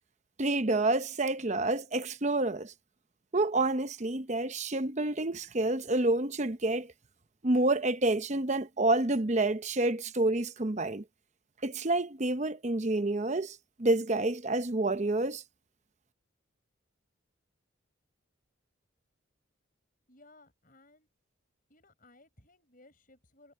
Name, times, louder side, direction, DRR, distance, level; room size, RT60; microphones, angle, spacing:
voice 1, 0.4-2.7 3.3-6.9 7.4-11.0 11.6-15.4, right 2 dB, 35° right, 0.8 m, -28 dB
voice 2, 20.1-21.1 21.7-23.5, left 2 dB, 45° left, 6.6 m, -60 dB
head